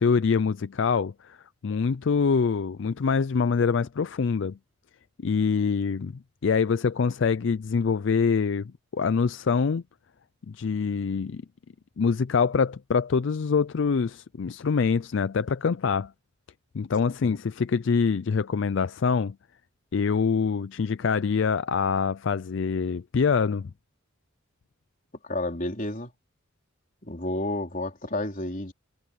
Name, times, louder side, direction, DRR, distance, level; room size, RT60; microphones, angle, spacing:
voice 1, 0.0-1.4 1.6-4.6 5.2-9.8 10.5-11.4 12.0-16.1 16.7-19.4 19.9-23.7, left 5 dB, 60° left, 0.4 m, -25 dB
voice 2, 25.2-26.1 27.0-28.7, left 1 dB, 40° left, 4.0 m, -31 dB
head